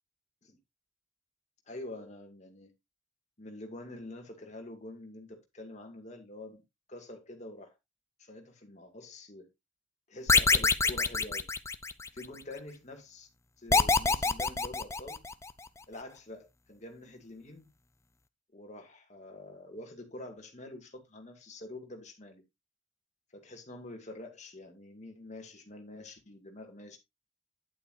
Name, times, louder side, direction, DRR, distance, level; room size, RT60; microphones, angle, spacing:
voice 1, 1.7-2.7 3.4-6.6 6.9-7.7 8.2-9.5 10.1-11.5 12.1-13.3 13.6-15.2 15.9-17.7 18.5-22.4 23.3-27.0, left 1 dB, 40° left, 2.2 m, -46 dB
sound 1, 10.3-12.3 13.7-15.5, left 4 dB, 15° left, 0.5 m, -25 dB
9.6 x 8.6 x 2.6 m
head